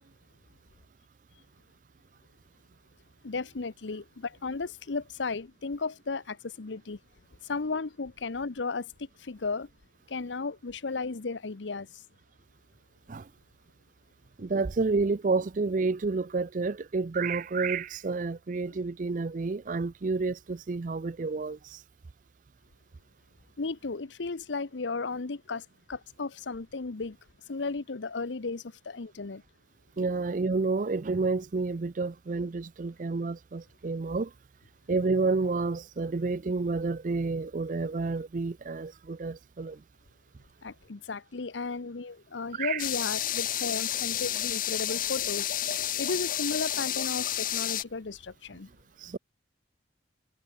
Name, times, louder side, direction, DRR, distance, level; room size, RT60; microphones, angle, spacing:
voice 1, 3.2-7.0 7.4-8.9 9.2-9.7 10.1-11.9 23.6-27.2 27.5-29.4 40.6-45.5 46.0-48.7, left 4 dB, 85° left, 0.8 m, -34 dB
voice 2, 14.4-21.8 30.0-34.3 34.9-39.8 42.5-42.8 49.0-49.2, right 3 dB, 45° right, 0.4 m, -30 dB
sound 1, 42.8-47.8, left 11 dB, 50° left, 1.2 m, -30 dB
head